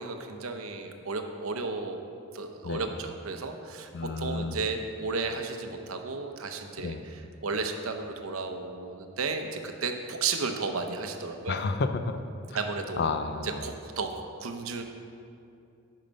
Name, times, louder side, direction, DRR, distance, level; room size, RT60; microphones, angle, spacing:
voice 1, 0.0-2.0 2.3-11.6 12.5-13.0 13.4-14.8, right 4 dB, 90° right, 5 dB, 0.8 m, -33 dB
voice 2, 3.9-4.6 6.8-7.0 11.5-12.2 13.0-13.6, left 4 dB, 50° left, 9 dB, 0.4 m, -30 dB
8.8 x 5.7 x 5.2 m, 2.5 s
head